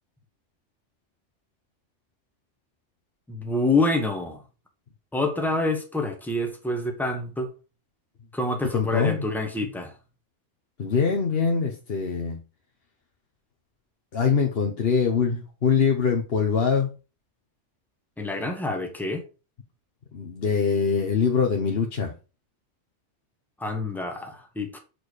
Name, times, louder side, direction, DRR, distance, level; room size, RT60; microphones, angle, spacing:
voice 1, 3.3-4.4 5.1-7.5 8.3-9.9 18.2-19.2 23.6-24.8, left 2 dB, ahead, 1.3 m, -27 dB
voice 2, 8.7-9.3 10.8-12.4 14.1-16.9 20.1-22.1, left 6 dB, 55° left, 1.2 m, -23 dB
6.6 x 4.4 x 4.9 m
omnidirectional pair, 1.2 m